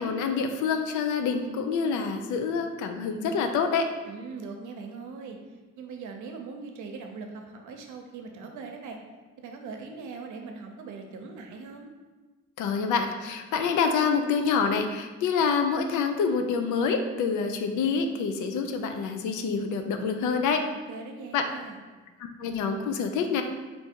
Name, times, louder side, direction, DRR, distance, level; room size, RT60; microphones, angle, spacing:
voice 1, 0.0-3.9 12.6-20.6 21.3-21.4 22.2-23.4, left 5 dB, 85° left, 6 dB, 0.5 m, -27 dB
voice 2, 4.1-5.4 5.8-9.0 9.4-11.9 20.9-21.8, right 4 dB, 75° right, 3 dB, 0.7 m, -40 dB
3.5 x 2.7 x 4.4 m, 1.3 s
cardioid pair, 90°, 30 cm